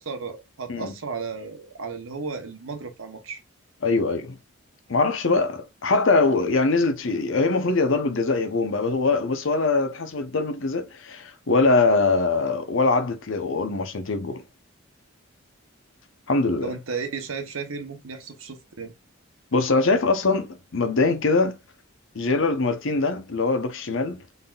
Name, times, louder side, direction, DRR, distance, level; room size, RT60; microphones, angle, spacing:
voice 1, 0.0-3.4 16.6-18.9, right 4 dB, 75° right, 1.0 m, -34 dB
voice 2, 3.8-4.4 4.9-14.4 16.3-16.7 19.5-21.6 22.1-24.2, left 3 dB, 65° left, 0.8 m, -22 dB
3.9 x 3.6 x 2.3 m
head